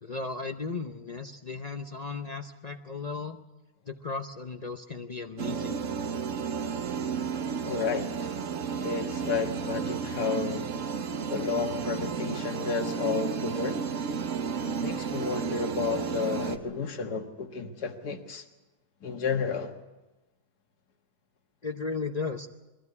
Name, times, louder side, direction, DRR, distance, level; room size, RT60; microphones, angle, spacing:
voice 1, 0.0-3.4 3.9-6.1 21.6-22.5, left 4 dB, 40° left, 0.6 m, -36 dB
sound 1, 5.4-16.6, right 6 dB, 55° right, 1.3 m, -32 dB
voice 2, 7.6-8.4 8.8-10.7 11.3-13.8 14.6-18.4 19.0-19.7, left 5 dB, 80° left, 2.1 m, -31 dB
22.5 x 13.0 x 9.6 m
omnidirectional pair, 1.7 m